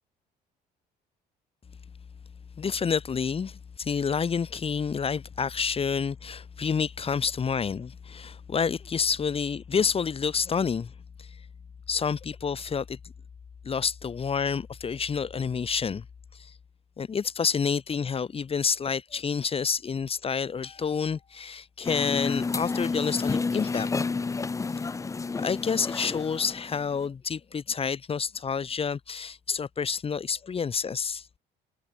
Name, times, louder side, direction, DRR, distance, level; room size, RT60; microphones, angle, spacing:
voice 1, 2.6-10.9 11.2-11.4 11.9-13.0 13.6-16.0 16.3-16.6 17.0-23.9 25.4-31.3, left 6 dB, 35° left, 4.0 m, -29 dB
sound 1, 21.8-27.1, left 4 dB, 20° left, 0.7 m, -30 dB
cardioid pair, 110°, 17 cm